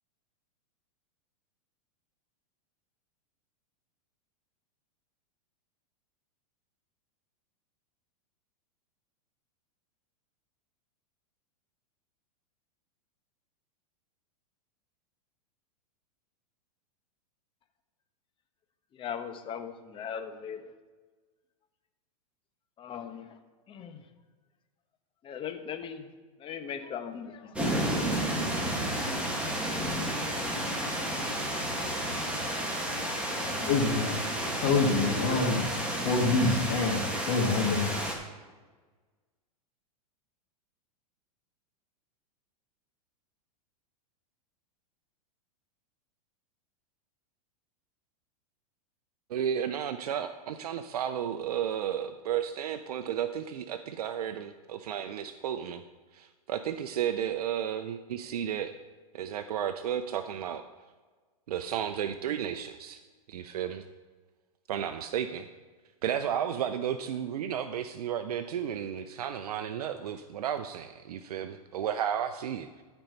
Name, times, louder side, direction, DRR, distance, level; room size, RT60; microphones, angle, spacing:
voice 1, 18.9-20.7 22.8-23.4 23.7-24.1 25.2-26.1 26.4-28.4, left 7 dB, 25° left, 7 dB, 1.0 m, -39 dB
sound 1, 27.6-38.2, right 1 dB, 5° right, 1.8 m, -31 dB
voice 2, 33.3-34.2 34.6-35.6 36.0-37.0 37.3-37.9, left 3 dB, 60° left, -2 dB, 2.0 m, -26 dB
voice 3, 49.3-55.8 56.1-58.8 59.1-60.6 61.5-63.0 63.3-63.8 64.7-65.5 66.0-72.7, right 9 dB, 80° right, 10 dB, 0.6 m, -33 dB
13.0 x 4.5 x 5.4 m, 1.4 s
hypercardioid pair, 120°, 19 cm